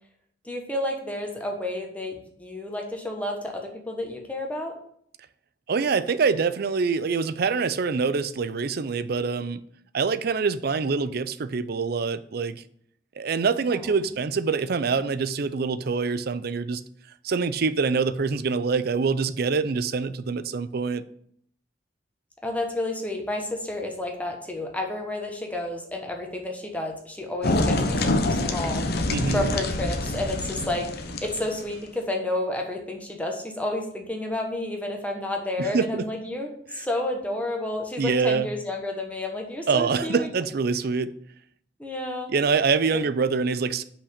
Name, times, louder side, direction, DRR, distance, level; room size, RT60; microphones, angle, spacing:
voice 1, 0.4-4.7 13.7-14.1 22.4-28.8 29.3-30.8 31.2-40.3 41.8-42.3 42.9-43.1, left 1 dB, 10° left, 1.3 m, -31 dB
voice 2, 5.7-9.6 9.9-12.6 13.2-16.8 17.2-21.0 29.1-29.5 35.6-36.1 36.8-36.9 38.0-38.5 39.7-41.1 42.3-43.8, right 5 dB, 55° right, 0.5 m, -25 dB
sound 1, 27.4-31.8, left 2 dB, 60° left, 0.9 m, -26 dB
5.9 x 5.2 x 6.5 m
head